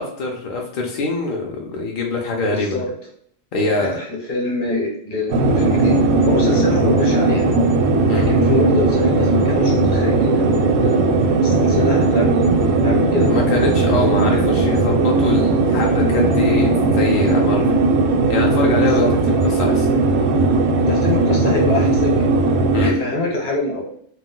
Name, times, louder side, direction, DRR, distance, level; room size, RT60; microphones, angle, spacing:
voice 1, 0.0-2.8 3.5-4.0 8.1-8.3 13.2-17.8 18.3-19.9 22.7-22.9, left 3 dB, 65° left, 0 dB, 0.5 m, -24 dB
voice 2, 2.5-2.9 3.5-5.9 6.2-7.5 8.1-13.3 14.0-14.4 18.8-19.1 20.9-22.4 22.8-23.8, left 2 dB, 45° left, -1 dB, 0.9 m, -24 dB
sound 1, 5.3-22.9, right 3 dB, 80° right, 1.0 m, -17 dB
2.4 x 2.2 x 3.7 m, 0.63 s
omnidirectional pair, 1.3 m